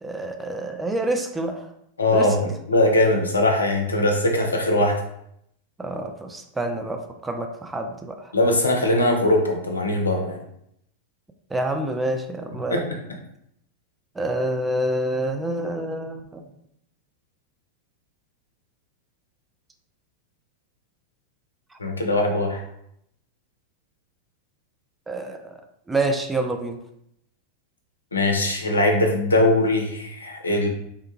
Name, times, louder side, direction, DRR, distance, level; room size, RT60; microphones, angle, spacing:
voice 1, 0.0-1.7 2.1-2.4 5.8-8.3 11.5-12.8 14.2-16.4 25.1-25.6 25.9-26.8, right 1 dB, 10° right, 5 dB, 0.3 m, -27 dB
voice 2, 2.0-2.4 2.7-4.9 8.3-10.4 12.7-12.8 21.8-22.6 28.1-30.7, left 1 dB, 75° left, 2 dB, 0.5 m, -21 dB
3.4 x 2.2 x 3.0 m, 0.75 s
figure-of-eight pair, 90°, 0 cm